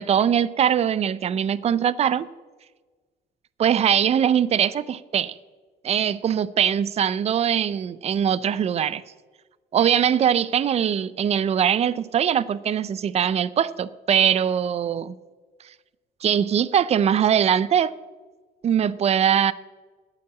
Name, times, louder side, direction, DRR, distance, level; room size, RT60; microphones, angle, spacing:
voice 1, 0.0-2.3 3.6-5.3 5.8-9.0 9.7-15.1 16.2-17.9 18.6-19.5, right 9 dB, 40° right, 18 dB, 0.5 m, -21 dB
8.6 x 7.7 x 8.3 m, 1.4 s
cardioid pair, 110°, 17 cm